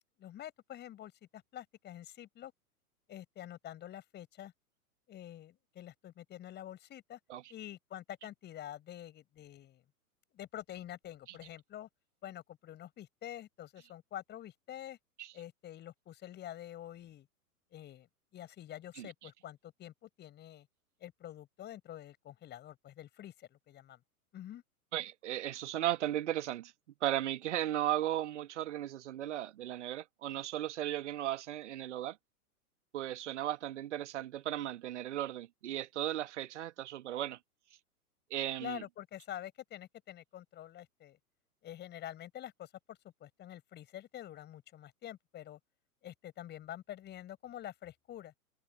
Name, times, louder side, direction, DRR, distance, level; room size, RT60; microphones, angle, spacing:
voice 1, 0.2-2.5 3.1-4.5 5.1-7.2 7.5-9.8 10.3-11.9 12.2-15.0 15.3-17.3 17.7-18.1 18.3-20.7 21.0-24.0 24.3-24.6 38.6-41.2 41.6-45.6 46.0-48.3, left 12 dB, 20° left, 6.2 m, -47 dB
voice 2, 24.9-26.7 27.0-32.2 32.9-37.4 38.3-38.8, right 13 dB, 50° right, 1.7 m, -36 dB
figure-of-eight pair, 110°, 45 cm